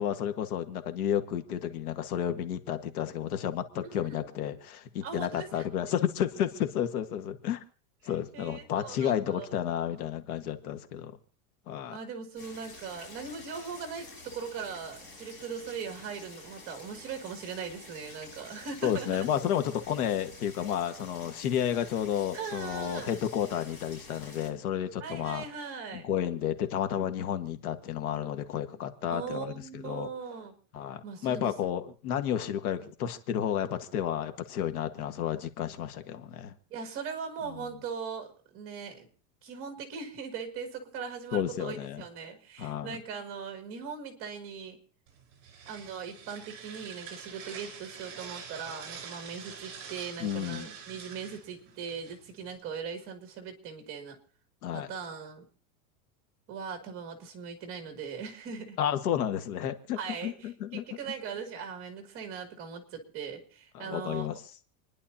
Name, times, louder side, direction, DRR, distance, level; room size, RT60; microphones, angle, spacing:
voice 1, 0.0-7.6 8.0-11.2 11.7-12.0 18.8-25.4 25.9-30.1 30.7-36.5 37.5-37.6 41.3-42.0 42.6-43.0 50.2-50.7 54.6-54.9 58.8-60.8 63.7-64.4, left 10 dB, 80° left, 8 dB, 1.7 m, -31 dB
voice 2, 3.8-4.2 5.0-5.6 8.0-9.5 11.9-19.3 22.3-23.2 25.0-26.1 29.1-30.5 31.0-31.7 36.7-39.1 39.4-44.8 45.7-54.2 54.7-55.4 56.5-58.8 60.0-64.4, right 6 dB, 30° right, 4 dB, 2.7 m, -40 dB
sound 1, 12.4-24.5, left 2 dB, 25° left, 6.1 m, -49 dB
sound 2, 45.1-52.6, right 6 dB, 45° right, 4.7 m, -46 dB
28.5 x 11.0 x 2.9 m, 0.43 s
supercardioid pair, 175°, 44 cm